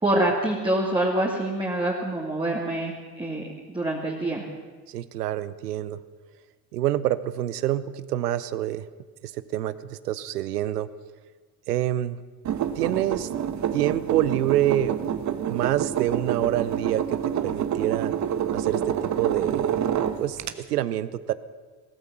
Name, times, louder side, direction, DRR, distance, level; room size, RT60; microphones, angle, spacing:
voice 1, 0.0-3.4 3.7-4.5, right 1 dB, 10° right, -3 dB, 2.3 m, -25 dB
voice 2, 4.9-6.0 6.7-8.8 9.5-10.9 11.7-12.2 12.8-13.3 13.7-14.9 15.5-17.2 17.4-18.1 18.5-18.8 19.2-19.8 20.2-20.4 20.7-21.3, right 13 dB, 85° right, 16 dB, 0.7 m, -26 dB
sound 1, 12.4-20.5, right 9 dB, 40° right, 1.1 m, -27 dB
16.5 x 14.0 x 6.1 m, 1.4 s
hypercardioid pair, 65°, 46 cm